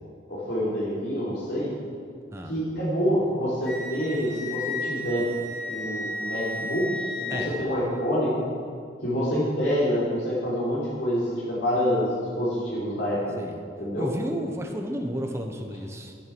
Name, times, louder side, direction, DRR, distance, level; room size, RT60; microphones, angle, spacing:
voice 1, 0.3-1.7 2.5-5.3 5.7-8.3 9.0-13.3 13.8-14.1, equal, 65° left, -8 dB, 3.5 m, -27 dB
Wind instrument woodwind instrument, 3.6-7.5, left 2 dB, 90° left, 3.2 m, -33 dB
voice 2, 14.0-16.1, equal, 15° right, 3 dB, 1.0 m, -32 dB
12.0 x 11.5 x 6.1 m, 2.2 s
head